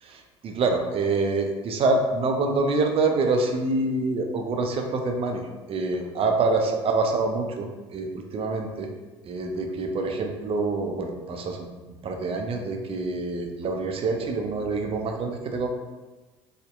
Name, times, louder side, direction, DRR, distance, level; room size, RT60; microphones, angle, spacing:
voice 1, 0.0-8.9 9.2-15.7, right 3 dB, 40° right, 3 dB, 0.4 m, -26 dB
2.6 x 2.1 x 2.4 m, 1.2 s
hypercardioid pair, 70°, 15 cm